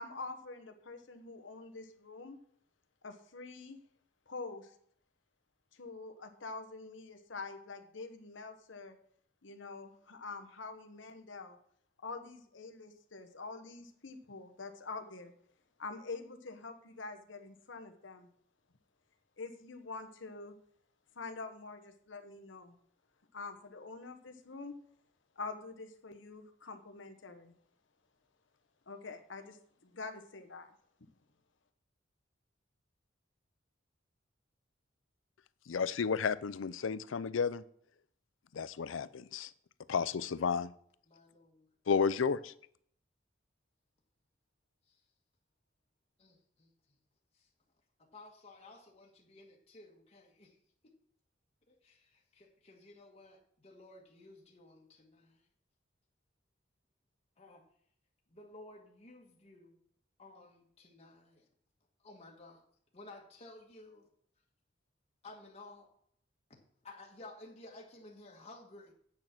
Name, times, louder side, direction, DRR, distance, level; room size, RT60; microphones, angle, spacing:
voice 1, 0.0-2.4 3.0-3.8 4.3-4.7 5.7-9.0 9.4-11.6 12.0-15.3 15.8-18.3 19.4-20.6 21.1-22.8 23.3-24.8 25.4-27.5 28.9-29.6 29.8-30.7, left 3 dB, 70° left, 7 dB, 1.1 m, -46 dB
voice 2, 35.7-37.6 38.5-39.5 39.9-40.7 41.9-42.5, left 6 dB, 85° left, 17 dB, 0.5 m, -32 dB
voice 3, 41.1-41.7 44.9-45.0 46.2-46.7 47.3-47.5 48.1-50.6 51.7-55.4 57.4-57.6 58.3-59.8 60.2-61.4 62.0-62.6 62.9-64.1 65.2-65.9 66.8-68.9, left 2 dB, 35° left, -1 dB, 1.6 m, -54 dB
8.8 x 6.5 x 6.0 m, 0.64 s
head